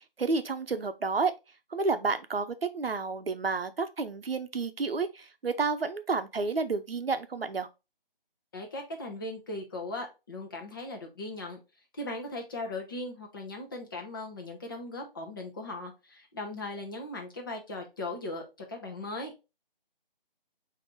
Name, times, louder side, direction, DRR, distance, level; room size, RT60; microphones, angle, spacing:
voice 1, 0.0-1.3 1.7-7.7, right 4 dB, 80° right, 0.7 m, -30 dB
voice 2, 8.5-11.6 11.9-19.3, left 2 dB, 25° left, 0.9 m, -38 dB
6.1 x 2.8 x 3.0 m
figure-of-eight pair, 155°, 29 cm